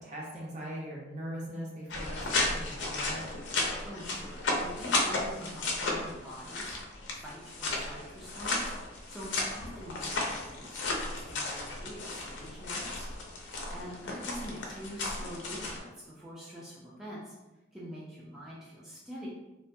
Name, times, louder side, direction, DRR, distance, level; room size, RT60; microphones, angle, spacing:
voice 1, 0.0-3.2, equal, 40° right, -4 dB, 0.6 m, -40 dB
sound 1, 1.9-15.8, left 2 dB, 80° left, 0.5 m, -34 dB
voice 2, 3.8-13.1 13.7-17.3 17.7-19.3, equal, 5° right, -8 dB, 0.4 m, -45 dB
2.7 x 2.2 x 2.6 m, 1.1 s
head